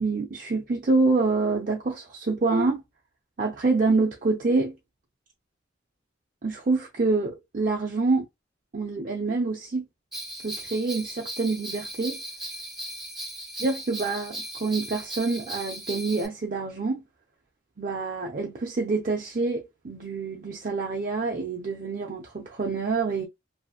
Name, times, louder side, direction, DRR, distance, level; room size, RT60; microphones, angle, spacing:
voice 1, 0.0-2.8 3.4-4.7 6.4-8.2 8.7-9.8 10.4-12.2 13.6-17.0 17.8-23.3, right 3 dB, 45° right, 0.5 m, -26 dB
Bell, 10.1-16.3, right 1 dB, ahead, 1.3 m, -37 dB
2.8 x 2.7 x 2.3 m
head